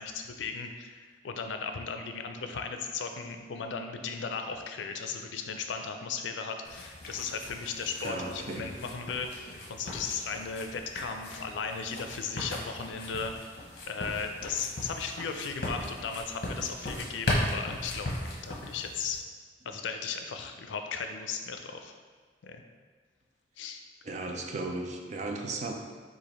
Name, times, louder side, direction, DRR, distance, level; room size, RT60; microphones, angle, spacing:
voice 1, 0.0-13.3 13.9-18.1 18.4-19.2 19.6-21.9 22.4-22.6 23.6-23.8, left 5 dB, 85° left, 6 dB, 0.4 m, -36 dB
sound 1, 6.6-19.2, left 1 dB, 55° left, 0.9 m, -37 dB
voice 2, 8.0-8.8 24.0-25.7, right 2 dB, 40° right, 2 dB, 0.4 m, -35 dB
4.8 x 2.5 x 4.1 m, 1.5 s
head